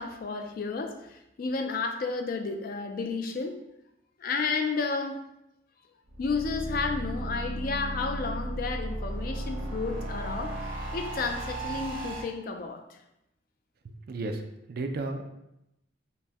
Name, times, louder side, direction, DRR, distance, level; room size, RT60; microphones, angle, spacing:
voice 1, 0.0-3.6 4.2-5.2 6.2-13.0, left 4 dB, 50° left, 5 dB, 0.3 m, -32 dB
sound 1, 6.1-12.2, right 1 dB, 85° right, 0.8 m, -35 dB
voice 2, 13.8-14.4 14.7-15.2, right 2 dB, 50° right, 5 dB, 0.3 m, -33 dB
4.1 x 2.1 x 3.5 m, 0.87 s
head